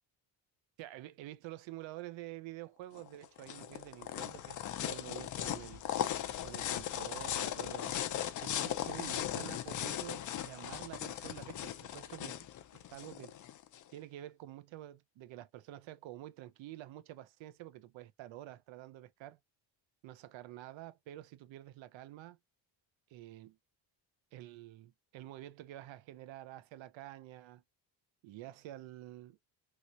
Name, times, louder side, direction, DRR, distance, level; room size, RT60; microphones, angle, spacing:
voice 1, 0.8-5.9 6.4-8.0 8.4-12.5 12.7-13.3 13.9-19.4 20.0-22.4 23.1-23.6 24.3-27.6 28.2-29.4, right 15 dB, 80° right, 0.6 m, -48 dB
sound 1, 3.0-13.8, left 11 dB, 45° left, 0.4 m, -38 dB
3.0 x 2.9 x 2.4 m
cardioid pair, 165°, 46 cm